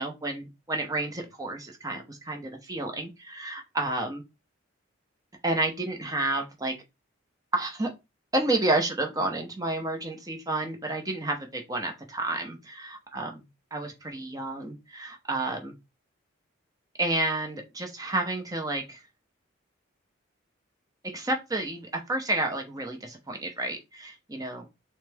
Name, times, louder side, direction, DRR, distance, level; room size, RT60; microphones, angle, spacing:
voice 1, 0.0-4.2 5.4-6.7 7.5-7.9 8.3-13.3 13.7-15.7 17.0-19.0 21.0-24.7, right 2 dB, 20° right, 0.8 m, -30 dB
6.3 x 2.2 x 3.5 m
head